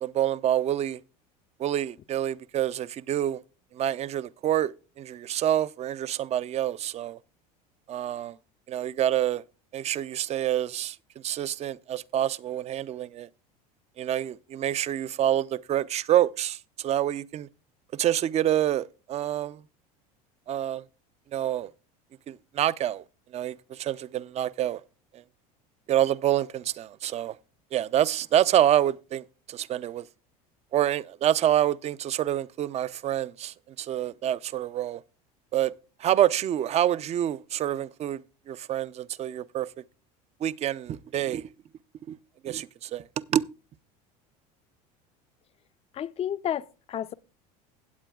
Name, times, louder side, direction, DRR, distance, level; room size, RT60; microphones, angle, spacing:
voice 1, 0.0-1.0 1.6-3.4 3.7-7.2 7.9-8.4 8.7-9.4 9.7-11.0 11.2-13.3 14.0-17.5 17.9-19.6 20.5-20.8 21.3-21.7 22.3-23.0 23.3-24.8 25.1-25.2 25.9-27.3 27.7-30.1 30.7-35.0 35.5-35.7 36.0-38.2 38.5-39.7 40.4-41.4 42.1-42.2 42.4-43.0 43.3-43.4, right 11 dB, 35° right, 0.4 m, -27 dB
voice 2, 45.9-47.1, left 10 dB, 30° left, 0.4 m, -31 dB
17.0 x 8.2 x 2.3 m
supercardioid pair, 95°, 19 cm